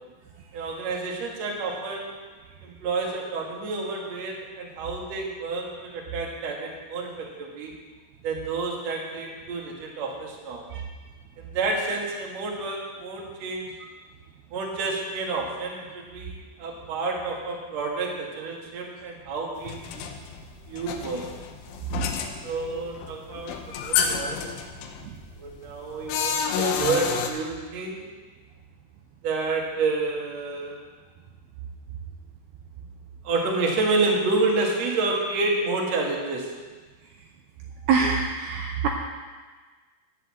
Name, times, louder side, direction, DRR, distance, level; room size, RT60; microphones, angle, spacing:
voice 1, 0.5-2.1 2.6-7.7 8.2-10.6 11.4-13.7 14.5-20.1 20.7-21.3 22.4-24.4 25.4-28.1 29.2-30.8 32.8-32.9 33.2-36.5, right 3 dB, 50° right, -1 dB, 2.1 m, -29 dB
sound 1, 19.6-27.3, left 7 dB, 90° left, 3.4 m, -30 dB
voice 2, 37.9-38.9, right 5 dB, 85° right, 1 dB, 2.2 m, -23 dB
10.5 x 8.1 x 7.5 m, 1.4 s
omnidirectional pair, 5.5 m